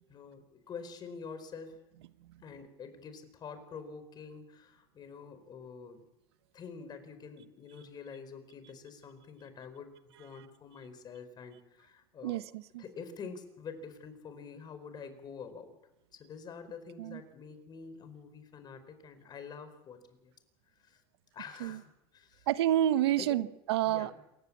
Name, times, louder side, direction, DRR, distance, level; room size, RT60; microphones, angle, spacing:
voice 1, 0.1-1.8 2.4-6.0 6.5-12.5 12.8-15.7 16.1-20.3 20.8-21.0 21.3-22.5 23.2-23.5 23.8-24.2, left 5 dB, 35° left, 4.6 m, -47 dB
voice 2, 22.5-24.1, right 12 dB, 85° right, 1.1 m, -28 dB
27.5 x 15.5 x 8.5 m
supercardioid pair, 120°, 13 cm